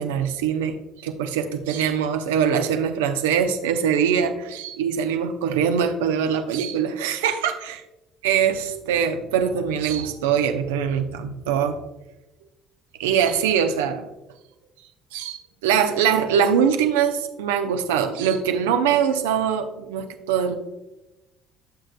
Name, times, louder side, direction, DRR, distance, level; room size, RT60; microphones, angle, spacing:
voice 1, 0.0-7.7 8.2-11.8 13.0-14.1 15.1-20.6, right 8 dB, 80° right, 7 dB, 0.7 m, -23 dB
11.5 x 7.3 x 2.2 m, 0.97 s
hypercardioid pair, 55°, 0 cm